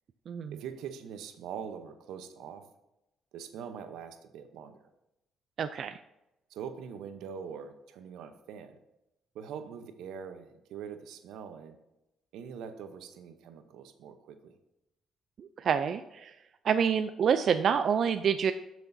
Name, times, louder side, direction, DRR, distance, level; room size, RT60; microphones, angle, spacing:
voice 1, 0.5-2.7 3.3-4.8 6.5-8.8 9.3-11.8 12.3-14.6, right 7 dB, 90° right, 8 dB, 0.8 m, -43 dB
voice 2, 5.6-6.0 15.4-16.3 16.6-18.5, right 7 dB, 60° right, 9 dB, 0.4 m, -27 dB
16.0 x 6.1 x 2.7 m, 0.91 s
cardioid pair, 90°, 0 cm